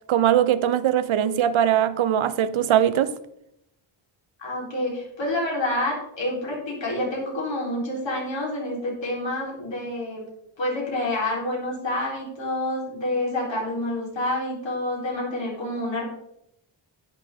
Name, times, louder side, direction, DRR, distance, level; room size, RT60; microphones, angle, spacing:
voice 1, 0.1-3.1, right 10 dB, 75° right, 0.7 m, -21 dB
voice 2, 4.4-10.2 10.6-16.1, left 1 dB, 65° left, 3.9 m, -28 dB
10.5 x 8.8 x 3.6 m
wide cardioid pair, 155°, 48 cm